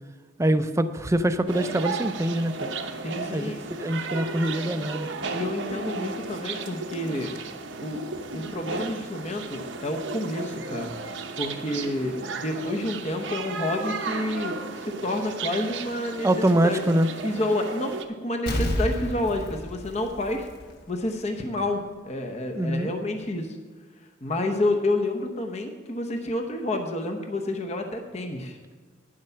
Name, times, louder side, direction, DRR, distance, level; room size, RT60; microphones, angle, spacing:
voice 1, 0.4-2.7 3.3-3.5 3.8-5.1 16.2-17.1 22.5-22.9, right 1 dB, 15° right, 10 dB, 0.5 m, -24 dB
sound 1, 1.5-18.0, right 4 dB, 80° right, 0.9 m, -34 dB
voice 2, 3.0-3.6 5.3-7.3 7.8-8.0 8.3-11.1 11.4-16.3 16.5-17.9 18.2-20.5 20.9-23.6 24.2-28.6, left 1 dB, 35° left, 4 dB, 0.9 m, -29 dB
Explosion, 18.5-21.1 21.4-21.5, equal, 55° left, 1.2 m, -30 dB
10.0 x 7.6 x 5.7 m, 1.4 s
head